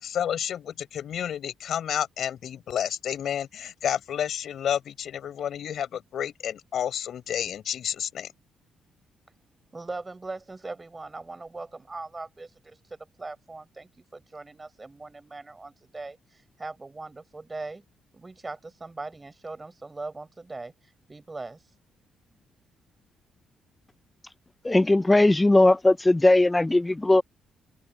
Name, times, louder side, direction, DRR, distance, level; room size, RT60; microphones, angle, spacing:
voice 1, 0.0-8.3, left 9 dB, 65° left, 5.7 m, -30 dB
voice 2, 9.7-17.8 18.1-21.6, right 3 dB, 20° right, 6.2 m, -40 dB
voice 3, 24.6-27.2, left 2 dB, 15° left, 0.5 m, -19 dB
cardioid pair, 90°, 0 cm